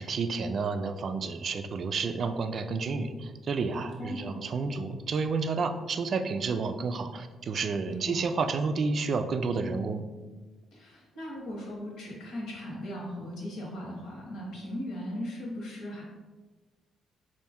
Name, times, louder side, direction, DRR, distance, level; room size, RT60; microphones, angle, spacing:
voice 1, 0.0-10.1, right 4 dB, 55° right, 8 dB, 0.3 m, -30 dB
voice 2, 4.0-4.4 7.9-8.2 10.7-16.0, equal, 80° left, -3 dB, 1.3 m, -38 dB
4.2 x 2.5 x 3.5 m, 1.3 s
cardioid pair, 90°, 0 cm